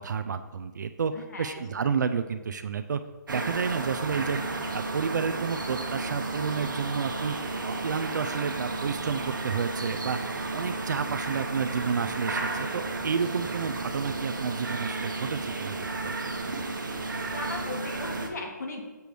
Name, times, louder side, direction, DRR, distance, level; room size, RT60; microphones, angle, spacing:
voice 1, 0.0-1.1 1.4-3.0 3.3-4.4 4.7-7.3 7.6-10.2 10.5-16.2, right 6 dB, 65° right, 10 dB, 0.4 m, -30 dB
voice 2, 1.1-1.6 17.3-18.8, left 3 dB, 60° left, 2 dB, 1.4 m, -37 dB
sound 1, 3.3-18.3, right 3 dB, 85° right, 1.1 m, -33 dB
6.8 x 3.4 x 5.9 m, 1.2 s
hypercardioid pair, 165°, 10 cm